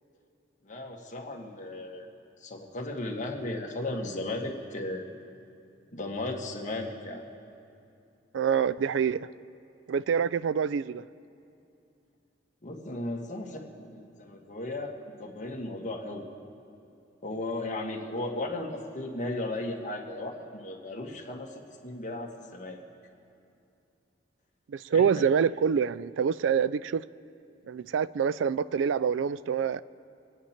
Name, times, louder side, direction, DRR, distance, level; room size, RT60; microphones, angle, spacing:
voice 1, 0.6-2.1 2.4-5.0 5.9-7.2 12.6-14.9 15.2-16.2 17.2-22.8 24.9-25.3, left 2 dB, 40° left, 1.6 m, -35 dB
voice 2, 8.3-9.3 9.9-11.0 24.7-27.0 27.7-29.8, right 7 dB, 85° right, 0.3 m, -26 dB
26.0 x 9.3 x 4.4 m
head